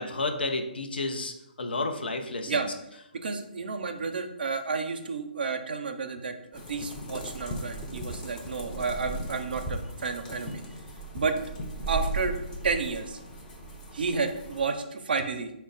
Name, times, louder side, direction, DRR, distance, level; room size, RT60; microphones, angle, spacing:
voice 1, 0.0-2.7, left 2 dB, 80° left, 5 dB, 0.6 m, -31 dB
voice 2, 3.1-10.6 11.1-11.4 11.9-12.3 12.6-13.2 13.9-15.5, right 4 dB, 70° right, 7 dB, 0.5 m, -31 dB
sound 1, 6.5-14.7, right 1 dB, 10° left, 0.6 m, -37 dB
4.1 x 2.1 x 3.9 m, 0.86 s
hypercardioid pair, 145°, 5 cm